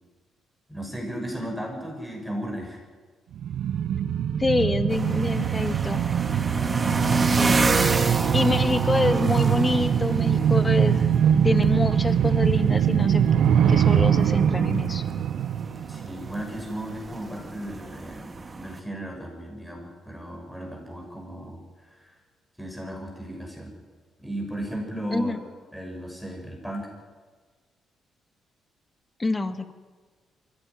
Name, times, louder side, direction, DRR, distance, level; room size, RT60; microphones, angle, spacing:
voice 1, 0.7-2.8 6.8-7.6 15.9-22.2 22.6-23.7 24.2-25.4 25.7-26.9, right 1 dB, 5° left, 0 dB, 6.2 m, -35 dB
sound 1, 3.3-16.6 16.9-17.0, right 8 dB, 70° right, 0.9 m, -23 dB
voice 2, 4.4-6.0 7.1-7.7 8.3-11.1 11.4-13.2 13.7-15.0 25.1-25.4 29.2-29.7, left 2 dB, 20° left, 10 dB, 1.8 m, -26 dB
sound 2, 4.9-18.8, right 3 dB, 30° right, 2.0 m, -29 dB
22.5 x 16.0 x 9.6 m, 1.4 s
cardioid pair, 90°, 0 cm